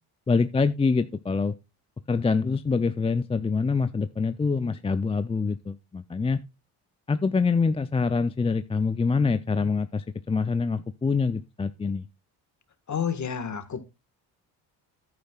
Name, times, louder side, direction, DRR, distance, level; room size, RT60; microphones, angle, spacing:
voice 1, 0.3-1.6 2.1-6.4 7.1-12.0, left 4 dB, 15° left, 0.4 m, -25 dB
voice 2, 12.9-13.8, left 7 dB, 40° left, 1.6 m, -29 dB
10.5 x 9.6 x 2.4 m
supercardioid pair, 70°, 45 cm